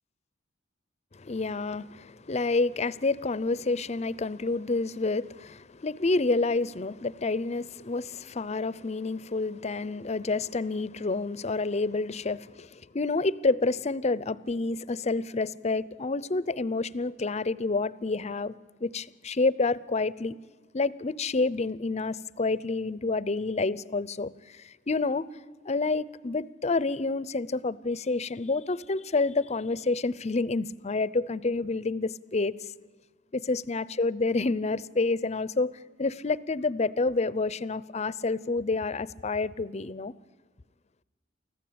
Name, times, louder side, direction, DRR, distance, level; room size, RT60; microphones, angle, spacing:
voice 1, 1.1-18.6 18.8-20.3 20.7-25.3 25.7-32.6 33.3-35.7 36.0-40.1, left 3 dB, 35° left, 0.6 m, -28 dB
24.5 x 15.0 x 8.7 m
head